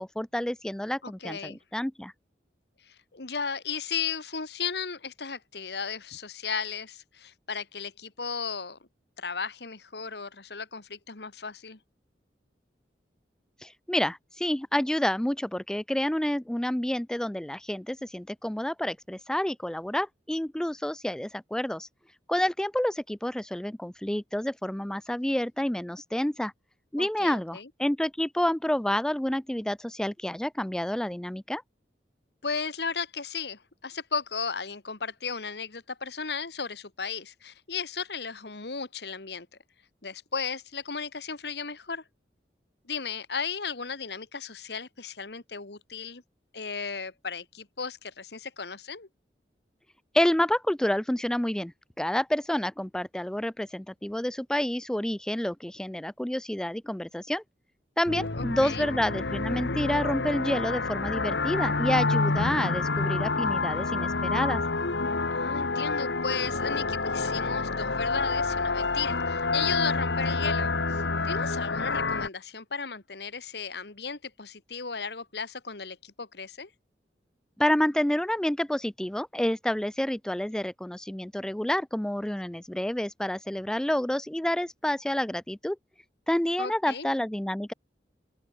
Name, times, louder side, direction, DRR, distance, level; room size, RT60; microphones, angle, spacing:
voice 1, 0.0-2.1 13.6-21.9 22.3-26.5 26.9-31.6 50.1-51.7 52.0-57.4 58.0-64.6 77.6-85.8 86.3-87.7, left 1 dB, 5° left, 0.3 m, -29 dB
voice 2, 1.0-1.6 2.8-8.8 9.2-11.8 27.0-27.7 32.4-39.5 40.0-42.0 42.9-46.2 46.5-49.1 58.3-58.9 65.3-76.7 86.6-87.1, left 5 dB, 70° left, 1.6 m, -35 dB
sound 1, 58.1-72.3, left 3 dB, 85° left, 1.7 m, -28 dB
open air
head